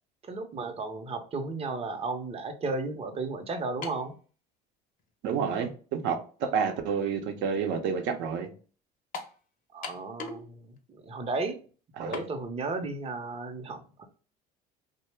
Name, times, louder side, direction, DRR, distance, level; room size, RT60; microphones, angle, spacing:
voice 1, 0.3-4.1 9.7-11.6 12.0-14.1, right 3 dB, 30° right, 0.6 m, -34 dB
sound 1, 3.8-4.1 5.0-5.1 9.1-9.4 9.8-10.5 10.8-10.9 12.1-12.3, left 4 dB, 45° left, 0.6 m, -38 dB
voice 2, 5.2-8.5 12.0-12.2, right 6 dB, 70° right, 0.7 m, -29 dB
2.8 x 2.1 x 3.2 m
supercardioid pair, 100°, 19 cm